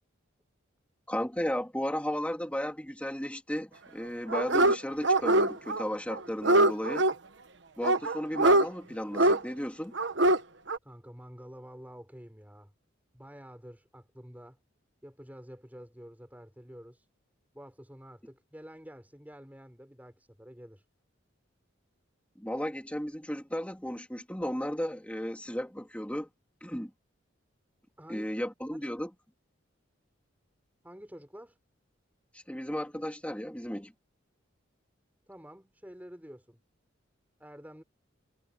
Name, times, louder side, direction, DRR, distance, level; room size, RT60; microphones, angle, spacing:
voice 1, 1.1-7.1 7.8-9.9 22.4-26.3 26.6-26.9 28.1-29.1 32.3-33.9, equal, 5° left, 2.4 m, -34 dB
Dog, 4.3-4.8 5.0-5.8 6.1-7.1 7.8-8.7 9.1-9.4 10.0-10.4 10.7-10.8, right 1 dB, 60° right, 1.1 m, -23 dB
voice 2, 10.8-12.7 13.1-14.6 15.0-17.1 17.5-20.9 28.0-28.3 28.7-28.8 30.8-31.6 35.3-36.6 37.4-37.8, equal, 10° right, 5.3 m, -49 dB
head